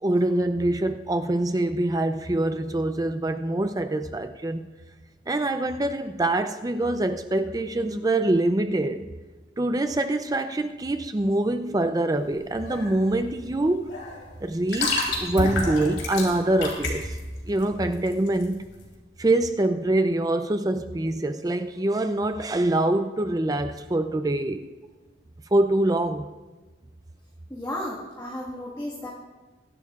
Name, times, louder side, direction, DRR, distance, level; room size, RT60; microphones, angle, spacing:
voice 1, 0.0-4.7 5.3-9.1 9.6-14.0 14.4-17.2 17.5-18.6 19.2-24.6 25.5-26.3, right 1 dB, 20° right, 9 dB, 0.4 m, -24 dB
sound 1, 12.2-18.9, left 2 dB, 85° left, 3.4 m, -30 dB
sound 2, 12.6-13.1 13.9-14.8 15.4-16.5, left 2 dB, 65° left, 2.3 m, -42 dB
voice 2, 27.5-29.1, left 1 dB, 15° left, -5 dB, 1.6 m, -33 dB
22.5 x 11.5 x 2.4 m, 1.2 s
head